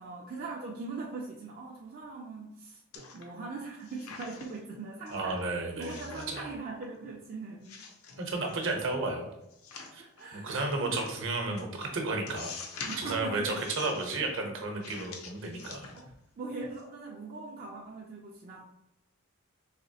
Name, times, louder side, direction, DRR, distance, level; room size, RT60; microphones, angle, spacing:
voice 1, 0.0-5.4 5.8-7.8 10.0-11.0 12.8-13.7 16.0-16.1 16.4-18.6, right 3 dB, 40° right, -2 dB, 0.4 m, -41 dB
sound 1, 2.9-3.5 3.8-4.7 5.1-5.2 5.8-6.5 6.8-7.2 7.6-8.7 9.5-10.2 10.9-11.2 11.6-11.7 12.3-13.2 13.5-14.2 14.8-16.3 16.6-16.8, left 4 dB, 70° left, 0.6 m, -45 dB
voice 2, 5.1-6.5 8.2-9.3 9.9-10.0 10.3-12.5 13.0-15.9, right 2 dB, 60° right, 2 dB, 0.9 m, -33 dB
4.1 x 3.1 x 2.7 m, 0.86 s
head